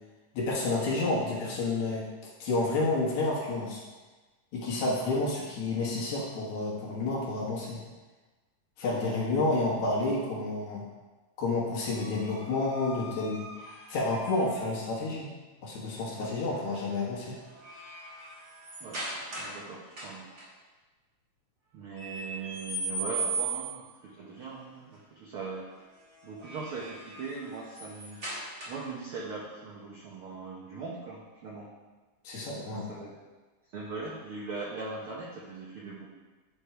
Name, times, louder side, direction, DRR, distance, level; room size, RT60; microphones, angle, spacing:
voice 1, 0.3-3.8 4.5-7.8 8.8-10.8 11.4-13.4 13.9-15.3 15.6-17.4 32.2-32.9, left 2 dB, 70° left, -5 dB, 2.7 m, -30 dB
sound 1, 11.8-14.7 16.5-16.8 17.2-19.6 19.9-20.5 22.0-23.9 26.2-29.0, right 3 dB, 35° right, 1.6 m, -39 dB
voice 2, 18.8-20.3 21.7-25.7 26.2-28.2 28.7-31.7 32.8-33.1 33.7-36.1, right 4 dB, 70° right, -4 dB, 1.3 m, -40 dB
9.8 x 3.5 x 4.4 m, 1.3 s
omnidirectional pair, 3.5 m